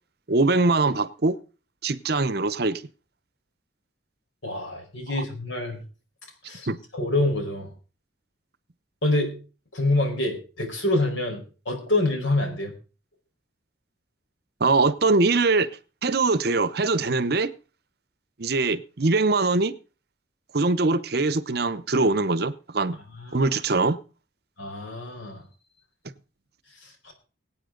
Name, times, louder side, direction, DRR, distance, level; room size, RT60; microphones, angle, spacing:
voice 1, 0.3-1.4 1.8-2.8 5.1-5.2 6.7-6.8 14.6-15.7 16.0-17.5 18.4-19.7 20.5-23.0 23.3-24.0, right 3 dB, 55° right, 0.8 m, -22 dB
voice 2, 4.4-5.8 6.4-6.7 6.9-7.7 9.0-9.4 9.7-12.7 23.2-23.5 24.6-25.4 26.8-27.1, left 2 dB, 85° left, 4.5 m, -26 dB
23.0 x 8.6 x 3.8 m
head